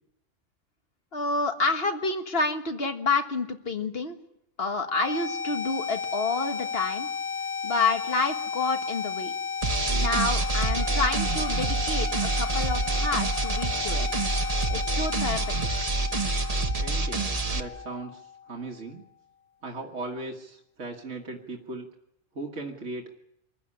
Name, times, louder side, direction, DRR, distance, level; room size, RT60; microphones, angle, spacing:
voice 1, 1.1-4.2 4.6-7.1 7.6-9.4 9.9-14.1 14.7-15.4, left 3 dB, 45° left, 7 dB, 1.8 m, -29 dB
sound 1, 4.8-18.7, left 6 dB, 30° left, 1.2 m, -34 dB
sound 2, 9.6-17.6, right 3 dB, 30° right, 1.1 m, -27 dB
Wind instrument woodwind instrument, 10.6-15.1, right 3 dB, 90° right, 1.7 m, -40 dB
voice 2, 16.8-19.0 19.6-21.9 22.3-23.1, right 2 dB, 60° right, 1 dB, 2.1 m, -38 dB
25.5 x 15.0 x 9.9 m, 0.82 s
omnidirectional pair, 1.4 m